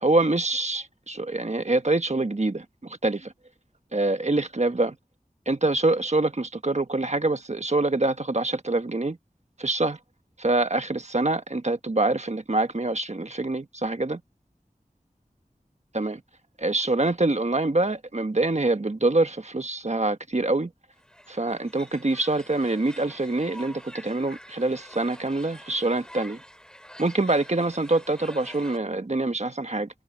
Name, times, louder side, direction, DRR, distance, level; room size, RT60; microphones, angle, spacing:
voice 1, 0.0-3.3 3.9-4.9 5.5-9.2 9.6-10.0 10.4-14.2 15.9-16.2 16.6-20.7 21.3-26.4 27.0-29.9, right 2 dB, 50° right, 1.3 m, -25 dB
sound 1, 20.9-28.8, equal, 5° left, 3.7 m, -47 dB
wide cardioid pair, 45°, 15 cm